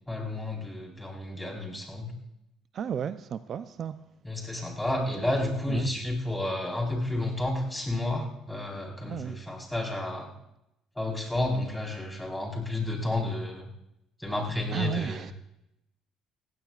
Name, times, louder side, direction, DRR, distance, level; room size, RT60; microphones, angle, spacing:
voice 1, 0.1-2.2 4.2-10.3 11.0-13.7 14.2-15.2, left 1 dB, 5° left, 4.2 m, -31 dB
voice 2, 2.7-4.0 5.2-5.3 5.7-5.9 9.0-9.4 14.7-15.3, right 8 dB, 55° right, 0.5 m, -33 dB
19.0 x 16.0 x 2.4 m
supercardioid pair, 90°, 0 cm